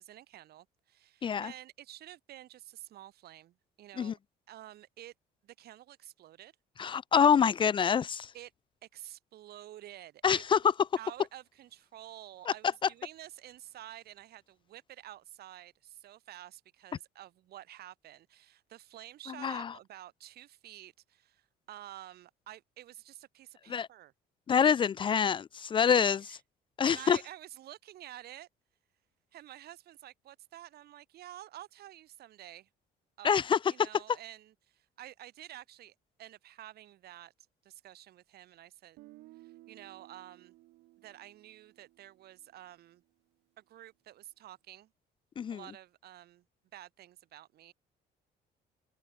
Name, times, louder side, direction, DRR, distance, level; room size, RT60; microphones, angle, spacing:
voice 1, 0.0-4.2 4.5-5.1 5.4-6.5 8.3-8.5 8.8-24.1 25.9-26.4 26.8-28.5 29.3-32.7 33.2-37.3 37.6-39.0 39.3-40.5 41.0-43.0 43.6-44.9 45.5-46.4 46.7-47.7, right 13 dB, 70° right, 6.5 m, -50 dB
voice 2, 1.2-1.5 4.0-4.1 6.8-8.3 10.2-10.6 12.5-12.6 19.4-19.7 23.7-23.9 24.5-26.2 26.8-27.2 33.2-33.6 45.4-45.6, left 7 dB, 30° left, 0.3 m, -26 dB
Guitar, 39.0-42.9, right 19 dB, 85° right, 2.9 m, -58 dB
cardioid pair, 110°, 17 cm